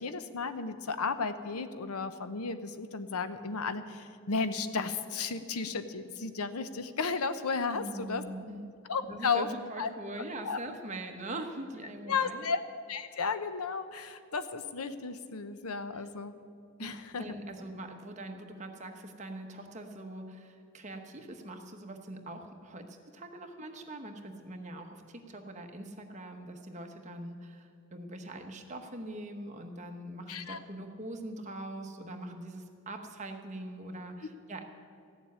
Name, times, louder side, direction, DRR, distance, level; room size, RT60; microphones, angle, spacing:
voice 1, 0.0-8.2 8.9-9.5 9.8-9.9 10.4-10.6 12.1-12.6 12.9-16.4 16.8-17.4 30.3-30.6, left 4 dB, 85° left, 11 dB, 0.8 m, -34 dB
voice 2, 7.7-8.7 9.0-12.5 15.9-16.1 16.8-34.6, right 1 dB, 30° right, 4 dB, 1.1 m, -42 dB
14.5 x 7.2 x 9.5 m, 2.2 s
head